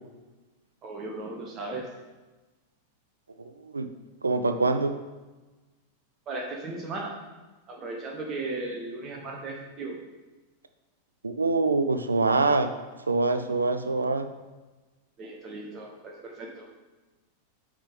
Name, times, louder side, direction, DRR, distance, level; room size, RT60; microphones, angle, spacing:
voice 1, 0.8-1.9 6.3-7.2 7.7-10.0 15.2-16.6, right 2 dB, 30° right, 0 dB, 1.0 m, -36 dB
voice 2, 4.2-5.0 11.2-12.7 13.1-14.3, right 3 dB, 75° right, 9 dB, 0.5 m, -24 dB
8.7 x 3.7 x 5.0 m, 1.2 s
figure-of-eight pair, 90°, 0 cm